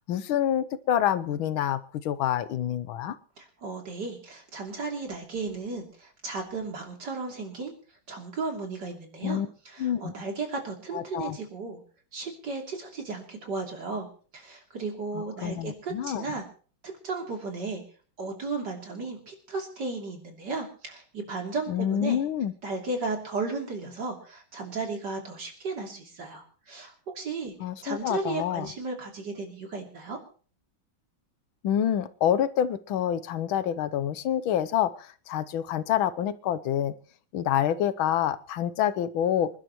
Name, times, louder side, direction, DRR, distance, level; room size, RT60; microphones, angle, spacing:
voice 1, 0.0-3.2 9.2-9.5 9.8-10.1 10.9-11.4 15.1-16.2 21.7-22.5 27.6-28.7 31.6-36.9 37.3-39.5, left 10 dB, 80° left, 14 dB, 1.6 m, -27 dB
voice 2, 3.4-7.7 8.1-11.8 12.1-14.1 14.3-16.4 16.8-17.8 18.2-22.2 22.6-27.5 27.8-30.2, right 3 dB, 55° right, 2 dB, 3.6 m, -35 dB
26.5 x 11.5 x 3.0 m, 0.41 s
omnidirectional pair, 2.2 m